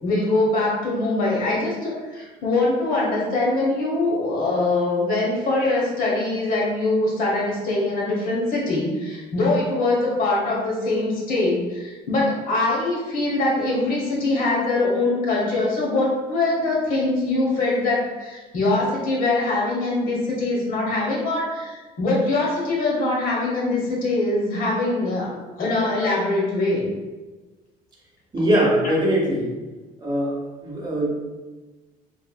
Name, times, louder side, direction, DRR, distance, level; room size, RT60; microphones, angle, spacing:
voice 1, 0.0-26.8, left 2 dB, 55° left, -4 dB, 1.1 m, -23 dB
voice 2, 28.3-29.5 30.0-31.1, right 1 dB, 25° right, -3 dB, 0.9 m, -22 dB
3.2 x 2.5 x 2.3 m, 1.2 s
cardioid pair, 110°, 17 cm